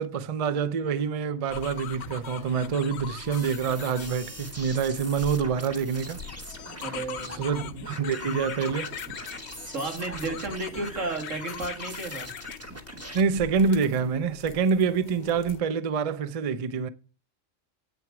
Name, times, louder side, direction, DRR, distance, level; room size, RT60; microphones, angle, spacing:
voice 1, 0.0-6.2 7.4-8.9 13.1-16.9, right 6 dB, 40° right, 0.5 m, -26 dB
sound 1, 1.5-15.6, left 9 dB, 65° left, 0.9 m, -41 dB
sound 2, 3.3-13.2, right 1 dB, 10° right, 1.2 m, -42 dB
voice 2, 6.8-7.5 9.7-12.3, right 3 dB, 90° right, 2.5 m, -33 dB
8.6 x 7.8 x 6.0 m
omnidirectional pair, 1.3 m